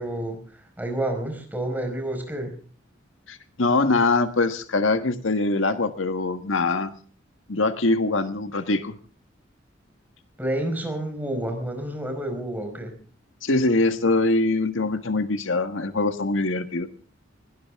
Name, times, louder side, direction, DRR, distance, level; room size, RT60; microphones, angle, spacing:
voice 1, 0.0-2.5 10.4-12.9, right 1 dB, 10° right, 5 dB, 4.8 m, -29 dB
voice 2, 3.3-6.9 7.5-8.9 13.4-16.9, left 2 dB, 85° left, 9 dB, 1.5 m, -23 dB
21.0 x 18.5 x 3.6 m, 0.42 s
head